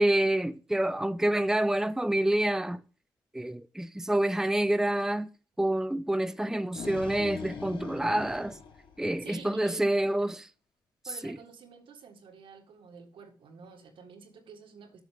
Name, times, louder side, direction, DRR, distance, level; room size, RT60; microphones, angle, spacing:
voice 1, 0.0-2.8 3.3-5.3 5.6-8.6 9.0-10.5, right 1 dB, 5° right, 0.6 m, -27 dB
sound 1, 6.4-9.6, left 5 dB, 80° left, 1.4 m, -42 dB
voice 2, 9.2-9.9 11.0-15.0, right 5 dB, 80° right, 1.7 m, -49 dB
8.0 x 6.5 x 5.0 m
supercardioid pair, 45°, 9 cm